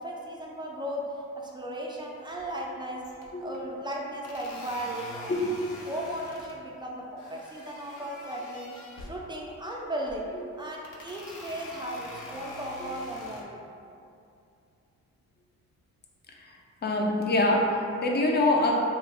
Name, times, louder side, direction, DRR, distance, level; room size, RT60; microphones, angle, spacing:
voice 1, 0.0-3.1 3.4-5.3 5.9-8.8 9.1-10.2 10.6-13.6, right 1 dB, 15° right, -2 dB, 0.4 m, -36 dB
sound 1, 2.3-2.7 3.0-3.6 4.2-6.6 7.2-9.2 9.9-10.3 10.8-13.4, left 1 dB, 75° left, 0.6 m, -45 dB
voice 2, 5.3-5.7 12.8-12.9 16.4-16.6 16.8-18.7, left 2 dB, 35° left, 0 dB, 0.5 m, -25 dB
2.8 x 2.4 x 3.3 m, 2.5 s
cardioid pair, 90°, 30 cm